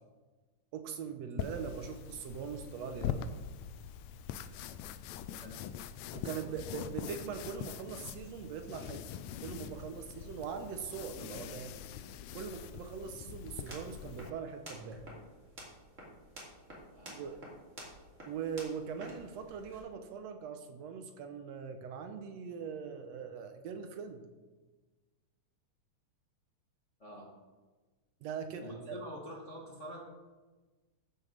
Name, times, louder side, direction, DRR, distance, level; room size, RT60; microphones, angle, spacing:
voice 1, 0.7-3.2 6.1-9.0 9.4-11.8 12.3-15.0 17.1-17.4 18.2-24.2 28.2-29.0, right 6 dB, 70° right, 7 dB, 1.7 m, -41 dB
sound 1, 1.4-14.3, left 9 dB, 85° left, 1.5 m, -43 dB
sound 2, 13.5-19.8, right 1 dB, 25° right, 2.8 m, -51 dB
voice 2, 28.6-30.0, equal, 50° left, -3 dB, 0.8 m, -46 dB
14.0 x 6.4 x 5.3 m, 1.3 s
omnidirectional pair, 3.7 m